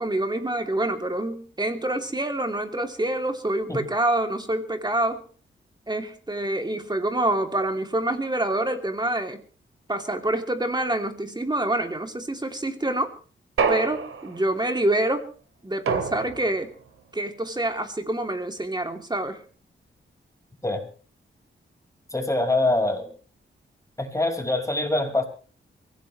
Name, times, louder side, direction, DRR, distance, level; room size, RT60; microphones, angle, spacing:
voice 1, 0.0-5.2 5.9-9.4 9.9-13.1 13.7-15.3 15.6-16.7 17.1-19.4, right 1 dB, 20° right, 4 dB, 3.0 m, -26 dB
sound 1, 13.6-14.6 15.9-16.7, right 5 dB, 90° right, 2.3 m, -27 dB
voice 2, 22.1-23.1 24.0-25.2, left 2 dB, 15° left, 3 dB, 5.3 m, -24 dB
23.5 x 16.5 x 3.3 m, 0.40 s
cardioid pair, 70°, 21 cm